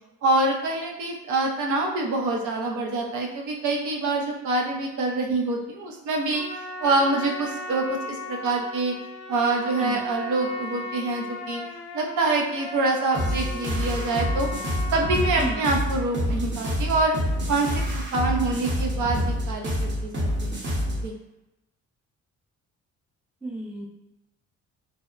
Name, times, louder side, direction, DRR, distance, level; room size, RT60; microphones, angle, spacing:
voice 1, 0.2-6.4 6.8-8.0 8.3-8.9 9.3-11.6 11.9-14.5 14.9-17.2 17.5-20.6 21.0-21.1, right 2 dB, 75° right, 1 dB, 0.6 m, -25 dB
Trumpet, 6.3-15.8, left 2 dB, 55° left, 0.5 m, -37 dB
sound 1, 13.1-21.1, equal, 40° right, 0.8 m, -27 dB
voice 2, 23.4-23.9, right 2 dB, 5° right, -1 dB, 0.4 m, -32 dB
2.7 x 2.0 x 2.4 m, 0.94 s
cardioid pair, 90°, 30 cm